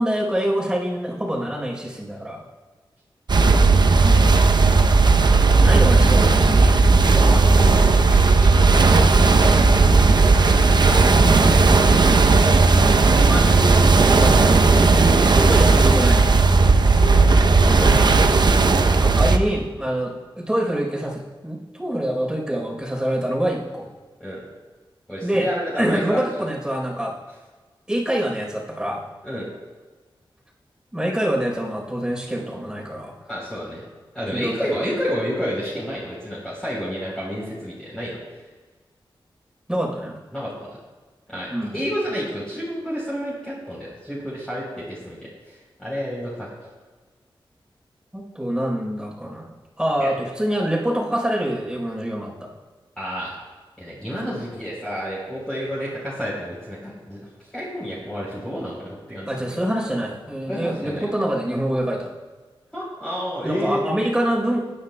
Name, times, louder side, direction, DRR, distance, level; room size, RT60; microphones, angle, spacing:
voice 1, 0.0-2.4 4.0-4.4 4.7-5.0 5.3-6.8 12.6-13.1 15.2-16.3 17.8-18.0 18.9-23.9 25.2-25.5 25.8-27.1 27.9-29.0 30.9-33.1 34.3-34.7 39.7-40.2 41.5-41.8 48.1-52.5 59.3-62.1 63.4-64.6, right 1 dB, 10° right, -2 dB, 3.9 m, -25 dB
sound 1, 3.3-19.4, right 3 dB, 55° right, 0.7 m, -15 dB
voice 2, 7.0-11.6 13.1-15.4 15.7-16.1 16.8-18.3 24.2-24.4 25.1-26.2 29.2-29.5 33.3-33.8 34.1-38.2 40.3-40.8 41.3-46.5 50.0-50.1 53.0-53.4 53.8-57.2 57.5-59.3 60.5-61.0 62.7-63.8, equal, 10° left, -7 dB, 3.6 m, -30 dB
21.5 x 9.8 x 2.2 m, 1.3 s
wide cardioid pair, 65°, 9 cm